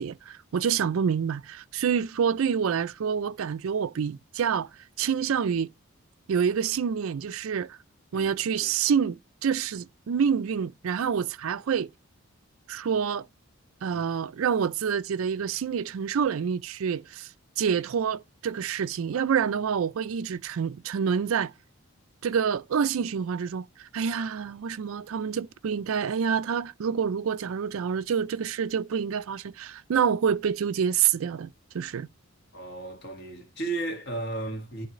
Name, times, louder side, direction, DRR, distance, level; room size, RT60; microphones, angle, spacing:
voice 1, 0.0-4.7 5.0-5.7 6.3-7.8 8.1-11.9 12.7-13.3 13.8-17.3 17.6-21.5 22.2-32.1, right 7 dB, 75° right, 0.4 m, -27 dB
voice 2, 32.5-34.9, right 2 dB, 55° left, 1.7 m, -34 dB
11.5 x 4.1 x 3.0 m
head